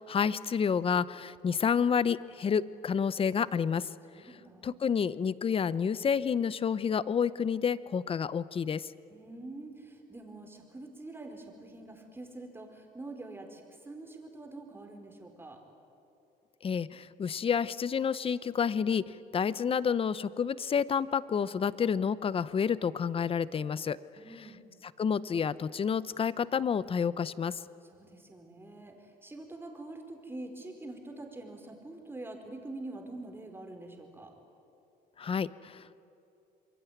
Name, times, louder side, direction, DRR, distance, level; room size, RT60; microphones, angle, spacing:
voice 1, 0.0-3.9 4.6-8.9 16.6-24.0 25.0-27.6 35.2-36.0, left 7 dB, 35° left, 17 dB, 0.8 m, -29 dB
voice 2, 4.1-4.7 9.1-15.6 24.2-24.6 27.8-34.3, right 2 dB, 15° right, 3 dB, 4.6 m, -45 dB
27.5 x 22.5 x 9.4 m, 2.7 s
cardioid pair, 110°, 17 cm